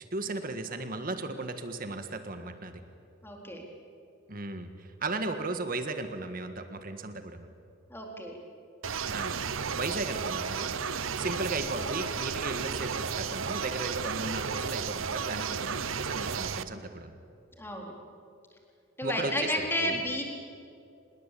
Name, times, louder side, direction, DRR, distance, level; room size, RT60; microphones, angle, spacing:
voice 1, 0.1-2.8 4.3-7.5 9.1-9.4 9.7-10.8 11.2-17.2 19.0-19.5 19.8-20.0, right 2 dB, 45° right, 8 dB, 1.7 m, -36 dB
voice 2, 3.2-3.7 5.1-5.2 7.9-8.4 17.6-17.9 19.0-20.2, left 1 dB, 10° left, 0 dB, 4.1 m, -32 dB
sound 1, 8.8-16.6, right 6 dB, 85° right, 1.0 m, -33 dB
26.5 x 21.0 x 8.6 m, 2.6 s
head